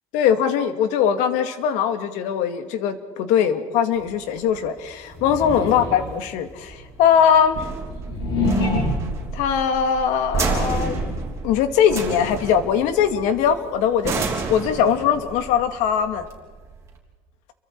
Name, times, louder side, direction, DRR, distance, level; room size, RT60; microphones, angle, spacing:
voice 1, 0.1-7.6 9.3-11.0 11.4-16.3, left 8 dB, 75° left, 9 dB, 2.1 m, -21 dB
sound 1, 3.9-17.0, right 4 dB, 25° right, 3.5 m, -30 dB
sound 2, 5.1-6.2 6.8-9.3 10.2-11.3, left 2 dB, 45° left, 6.2 m, -27 dB
29.0 x 23.5 x 4.7 m, 1.4 s
cardioid pair, 165°, 12 cm